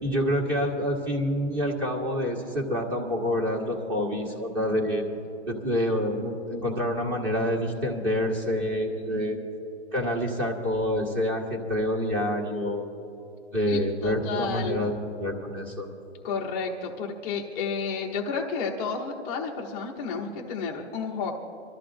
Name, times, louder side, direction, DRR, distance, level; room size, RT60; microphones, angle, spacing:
voice 1, 0.0-5.0 5.5-9.4 9.9-12.9 13.5-15.9, equal, 20° right, 0 dB, 1.8 m, -27 dB
voice 2, 9.1-9.5 13.7-14.9 16.2-21.3, left 5 dB, 10° left, -2 dB, 0.8 m, -32 dB
26.0 x 13.5 x 2.5 m, 2.9 s
hypercardioid pair, 170°, 34 cm